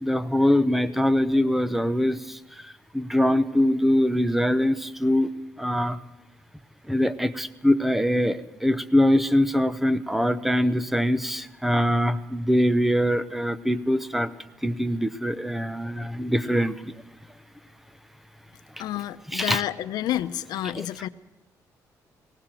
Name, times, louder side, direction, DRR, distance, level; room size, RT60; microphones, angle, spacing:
voice 1, 0.0-2.2 2.9-5.3 5.6-6.0 6.9-14.3 14.6-16.7 19.3-19.6 20.7-20.9, equal, 5° right, 14 dB, 0.9 m, -23 dB
voice 2, 18.8-21.1, left 12 dB, 85° left, 11 dB, 0.8 m, -29 dB
19.0 x 17.5 x 7.7 m, 0.97 s
cardioid pair, 120°, 7 cm